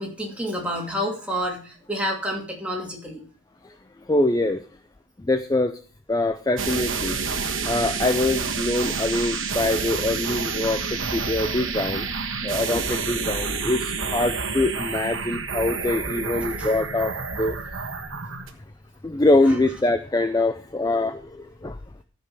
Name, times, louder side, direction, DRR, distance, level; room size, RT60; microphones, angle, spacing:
voice 1, 0.0-3.2 16.4-16.7, equal, 5° right, -1 dB, 2.6 m, -29 dB
voice 2, 4.1-4.6 5.2-5.7 6.1-7.2 7.7-12.1 12.4-17.6 19.0-21.8, left 2 dB, 20° left, 9 dB, 0.4 m, -24 dB
sound 1, 6.6-18.5, right 5 dB, 70° right, 1.4 m, -29 dB
13.5 x 5.2 x 6.3 m, 0.42 s
head